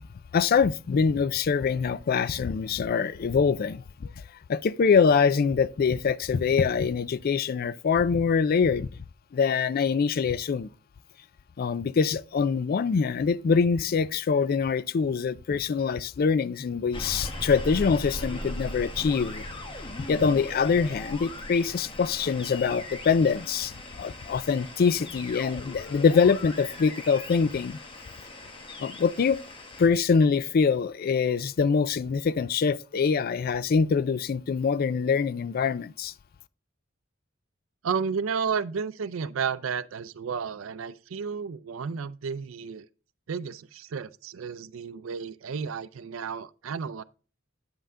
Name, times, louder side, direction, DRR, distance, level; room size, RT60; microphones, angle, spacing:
voice 1, 0.3-3.8 4.5-8.9 9.3-10.7 11.6-19.4 20.1-23.7 24.0-27.8 28.8-29.4 29.8-36.1, left 5 dB, 50° left, 0.4 m, -24 dB
sound 1, 16.9-29.9, left 1 dB, 25° left, 1.1 m, -39 dB
voice 2, 37.8-42.9 43.3-47.0, right 6 dB, 85° right, 0.4 m, -32 dB
8.8 x 5.6 x 3.6 m
head